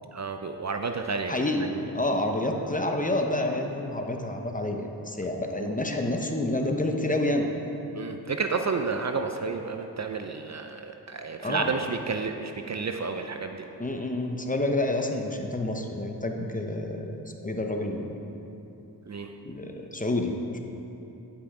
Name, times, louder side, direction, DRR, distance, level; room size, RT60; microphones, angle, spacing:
voice 1, 0.1-1.4 5.6-5.7 8.0-13.6 19.1-19.3 19.6-19.7, right 4 dB, 40° right, 6 dB, 0.6 m, -31 dB
voice 2, 1.3-7.5 11.4-11.8 13.8-18.2 19.4-20.6, left 1 dB, 20° left, 3 dB, 0.9 m, -28 dB
10.0 x 5.9 x 4.9 m, 3.0 s
cardioid pair, 50°, 41 cm